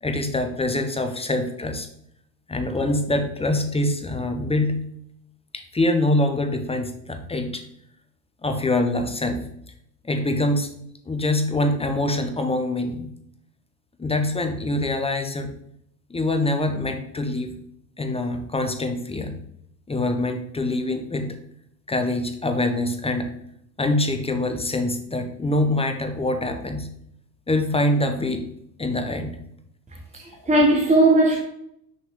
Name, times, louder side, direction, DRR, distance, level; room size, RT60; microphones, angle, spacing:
voice 1, 0.0-1.9 2.5-4.8 5.5-7.6 8.4-9.4 10.0-10.7 11.1-13.1 14.0-15.5 16.1-17.6 18.0-19.4 19.9-21.4 21.9-23.3 23.8-26.9 27.5-28.5 28.8-29.4, left 1 dB, 10° left, 0.9 m, -24 dB
voice 2, 30.1-31.4, right 2 dB, 15° right, 1.4 m, -18 dB
6.3 x 5.2 x 3.8 m
hypercardioid pair, 70°, 49 cm